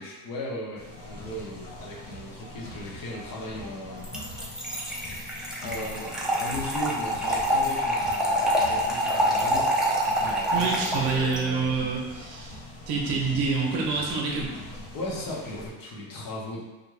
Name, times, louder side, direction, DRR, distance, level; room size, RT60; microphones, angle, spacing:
voice 1, 0.0-4.1 5.1-5.3 5.6-9.8 10.2-11.7 14.9-16.6, left 1 dB, 55° left, -4 dB, 0.9 m, -37 dB
sound 1, 0.8-15.7, left 1 dB, 35° left, 0.6 m, -42 dB
Trickle dribble / Fill (with liquid), 4.0-11.4, equal, ahead, 0.4 m, -26 dB
voice 2, 10.5-12.5 12.9-14.5, right 4 dB, 75° right, -1 dB, 0.7 m, -27 dB
2.5 x 2.2 x 3.1 m, 1.1 s
cardioid pair, 85°, 40 cm